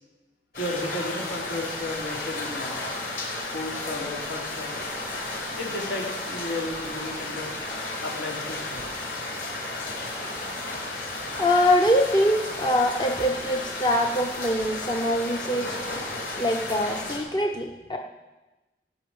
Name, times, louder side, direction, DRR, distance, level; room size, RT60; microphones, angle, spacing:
sound 1, 0.5-17.2, left 2 dB, 55° left, 4.5 m, -33 dB
voice 1, 0.6-2.8 3.5-4.9 5.6-7.6 8.0-8.9, left 2 dB, 80° left, -3 dB, 3.7 m, -33 dB
voice 2, 11.3-15.8 16.4-18.0, equal, 25° left, 2 dB, 0.8 m, -23 dB
18.0 x 6.2 x 8.7 m, 1.1 s
head